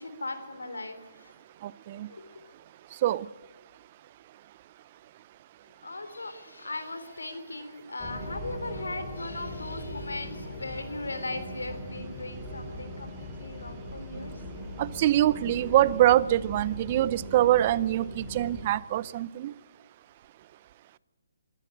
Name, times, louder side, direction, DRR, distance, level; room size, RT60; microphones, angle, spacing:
voice 1, 0.0-1.3 1.9-2.2 5.8-14.4, left 2 dB, 90° left, 3.7 m, -38 dB
voice 2, 1.6-2.1 3.0-3.3 14.8-19.5, right 13 dB, 35° right, 0.6 m, -24 dB
sound 1, 8.0-18.7, equal, 10° left, 4.6 m, -40 dB
25.0 x 13.5 x 8.8 m
hypercardioid pair, 150°, 0 cm